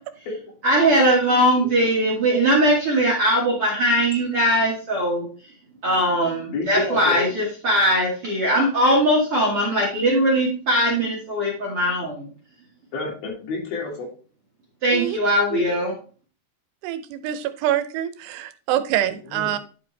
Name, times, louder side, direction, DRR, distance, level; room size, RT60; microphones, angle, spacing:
voice 1, 0.6-5.3 5.8-12.3 14.8-15.9, equal, 50° right, -3 dB, 1.8 m, -20 dB
voice 2, 6.5-7.2 12.9-14.1 19.0-19.5, left 3 dB, 65° left, -1 dB, 4.2 m, -29 dB
voice 3, 16.8-19.6, right 12 dB, 85° right, 11 dB, 2.7 m, -25 dB
11.0 x 5.3 x 3.2 m, 0.38 s
omnidirectional pair, 4.7 m